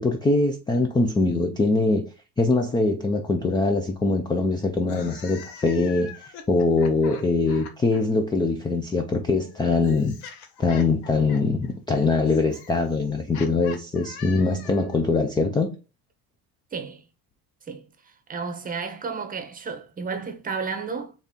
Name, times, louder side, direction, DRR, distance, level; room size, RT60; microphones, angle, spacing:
voice 1, 0.0-2.1 2.4-10.1 10.6-15.7, left 3 dB, 10° left, 0.4 m, -23 dB
sound 1, 4.8-8.0 9.1-15.0, left 7 dB, 80° left, 1.2 m, -44 dB
voice 2, 16.7-17.0 17.7-17.8 18.3-21.1, right 5 dB, 20° right, 0.9 m, -32 dB
4.1 x 3.5 x 3.6 m
cardioid pair, 150°, 40 cm